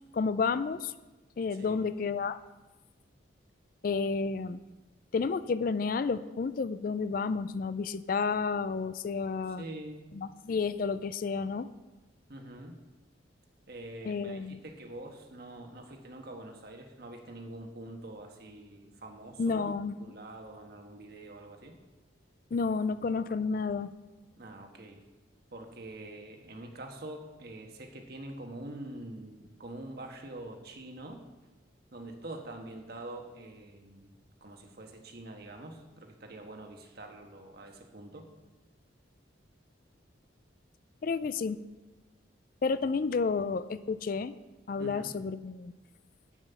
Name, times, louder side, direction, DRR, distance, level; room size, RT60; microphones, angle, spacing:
voice 1, 0.1-0.9 1.4-2.4 3.8-4.6 5.1-9.6 10.1-11.7 14.0-14.6 19.4-20.0 22.5-23.9 41.0-41.6 42.6-44.4 44.7-45.7, left 4 dB, 45° left, 14 dB, 0.3 m, -31 dB
voice 2, 1.5-1.8 9.5-10.1 12.3-12.8 13.7-19.7 20.0-21.8 24.4-25.0 25.5-31.2 31.9-34.1 34.4-38.3 44.8-45.1, right 1 dB, 50° right, 3 dB, 1.4 m, -45 dB
9.1 x 7.3 x 6.9 m, 1.1 s
head